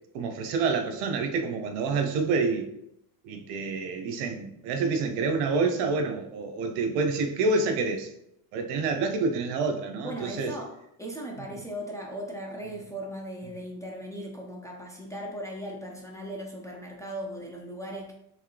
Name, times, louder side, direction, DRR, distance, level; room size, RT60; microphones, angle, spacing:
voice 1, 0.1-2.7 3.2-8.1 8.5-10.5, right 4 dB, 65° right, 5 dB, 0.8 m, -27 dB
voice 2, 10.0-10.7 11.0-18.1, equal, 5° left, -1 dB, 0.5 m, -38 dB
4.6 x 3.2 x 3.2 m, 0.78 s
supercardioid pair, 125°, 44 cm